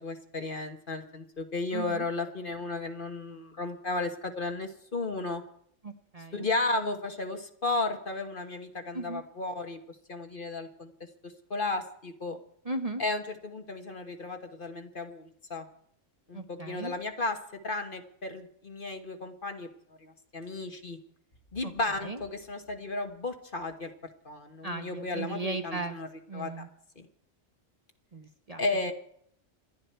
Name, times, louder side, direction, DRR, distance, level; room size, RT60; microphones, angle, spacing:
voice 1, 0.0-5.4 6.3-9.8 10.1-10.9 11.2-12.4 13.0-15.7 16.3-17.4 17.6-19.7 20.0-21.0 21.5-23.9 24.2-26.1 26.3-26.5 27.0-27.1 28.6-28.9, left 2 dB, 45° left, 5 dB, 1.5 m, -34 dB
voice 2, 1.7-2.1 5.8-6.5 8.9-9.2 12.6-13.0 16.3-16.9 21.6-21.7 22.0-22.2 24.6-25.9 26.3-26.7 28.1-28.6, right 2 dB, 30° right, 6 dB, 1.0 m, -36 dB
28.0 x 11.0 x 4.5 m, 0.67 s
omnidirectional pair, 1.3 m